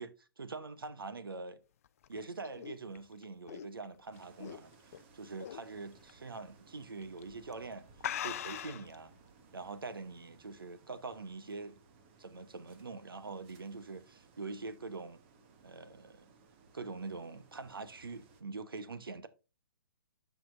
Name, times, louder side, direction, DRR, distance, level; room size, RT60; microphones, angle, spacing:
voice 1, 0.0-1.6 2.1-4.7 5.1-7.9 8.2-9.1 9.5-11.8 12.2-15.2 15.6-16.3 16.7-19.3, right 3 dB, 65° right, 1.0 m, -44 dB
sound 1, 1.9-5.0 5.4-5.7 6.1-6.2 7.0-7.2 7.5-7.6 8.0-8.9, left 10 dB, 35° left, 0.4 m, -40 dB
sound 2, 4.1-18.4, right 5 dB, 30° right, 1.2 m, -62 dB
13.0 x 5.1 x 2.5 m
figure-of-eight pair, 125°, 12 cm